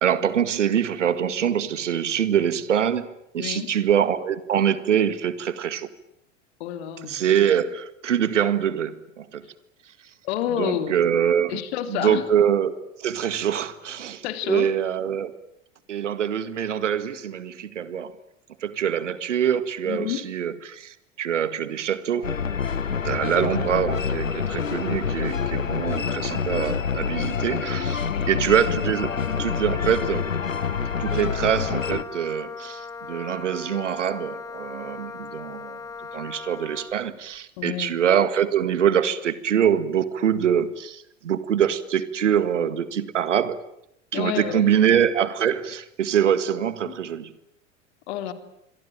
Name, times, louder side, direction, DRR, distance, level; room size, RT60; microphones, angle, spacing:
voice 1, 0.0-3.1 3.3-5.9 7.1-9.4 10.6-11.6 11.9-15.3 15.9-18.1 18.6-22.3 23.0-30.3 31.0-35.8 36.1-43.6 44.1-47.3, right 9 dB, 70° right, 15 dB, 1.9 m, -24 dB
voice 2, 3.4-3.7 6.6-7.2 10.2-11.0 11.5-12.2 14.2-14.8 19.8-20.3 28.0-28.3 37.6-37.9 44.1-44.7 46.8-46.9 48.1-48.3, left 11 dB, 55° left, 10 dB, 3.2 m, -29 dB
sound 1, 22.2-32.0, left 6 dB, 80° left, 1.2 m, -27 dB
Wind instrument woodwind instrument, 29.0-37.0, left 5 dB, 10° left, 2.1 m, -38 dB
26.5 x 23.5 x 9.1 m, 0.77 s
figure-of-eight pair, 80°, 38 cm